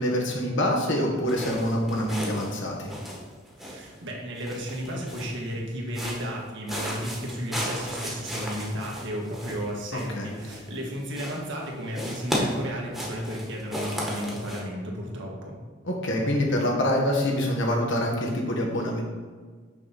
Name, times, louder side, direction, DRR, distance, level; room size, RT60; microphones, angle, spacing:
voice 1, 0.0-2.9 9.9-10.3 15.8-19.0, equal, 65° left, 0 dB, 1.4 m, -26 dB
sound 1, 1.3-4.0 4.4-5.4 5.9-6.4 6.7-10.9 11.1-11.6 11.9-14.6, equal, ahead, 1.4 m, -35 dB
voice 2, 3.6-15.6, equal, 65° right, -1 dB, 1.5 m, -33 dB
6.4 x 4.1 x 5.8 m, 1.5 s
head